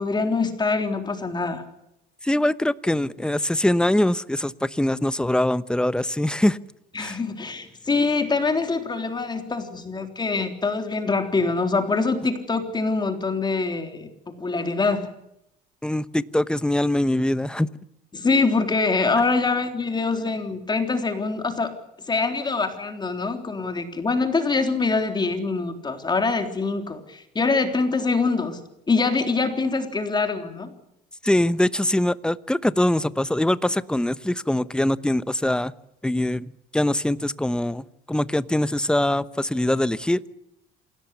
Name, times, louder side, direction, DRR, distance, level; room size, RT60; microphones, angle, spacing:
voice 1, 0.0-1.6 6.9-15.1 18.1-21.8 22.1-28.6 28.9-30.7, left 4 dB, 25° left, 6 dB, 3.6 m, -24 dB
voice 2, 2.2-6.6 7.0-7.2 15.8-17.7 31.2-35.7 36.0-36.5 36.7-40.2, left 1 dB, 5° left, 15 dB, 0.9 m, -23 dB
27.5 x 17.5 x 8.1 m, 0.83 s
cardioid pair, 110°, 17 cm